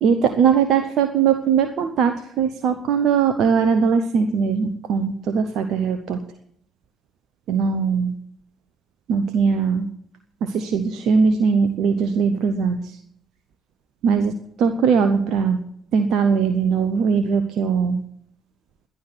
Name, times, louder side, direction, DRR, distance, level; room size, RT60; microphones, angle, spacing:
voice 1, 0.0-6.2 7.5-8.1 9.1-9.9 10.4-13.0 14.0-15.6 15.9-18.0, right 6 dB, 65° right, 8 dB, 1.1 m, -20 dB
12.5 x 11.5 x 6.1 m, 0.69 s
hypercardioid pair, 50°, 0 cm